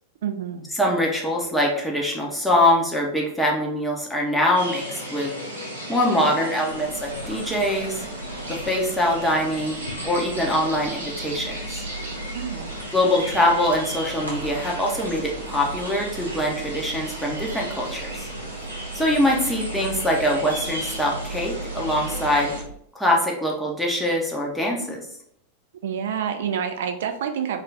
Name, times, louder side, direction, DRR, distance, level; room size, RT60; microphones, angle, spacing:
voice 1, 0.2-0.7 12.3-12.7 25.8-27.6, right 8 dB, 60° right, 6 dB, 0.3 m, -28 dB
voice 2, 0.7-5.3 5.9-8.0 8.5-11.8 12.9-18.3 18.9-22.5 22.9-25.1, left 1 dB, 5° left, -2 dB, 0.7 m, -23 dB
sound 1, 4.5-22.6, right 1 dB, 80° right, 0.7 m, -35 dB
sound 2, 6.7-22.7, right 3 dB, 80° left, 0.4 m, -38 dB
2.4 x 2.3 x 3.1 m, 0.69 s
figure-of-eight pair, 90°, 0 cm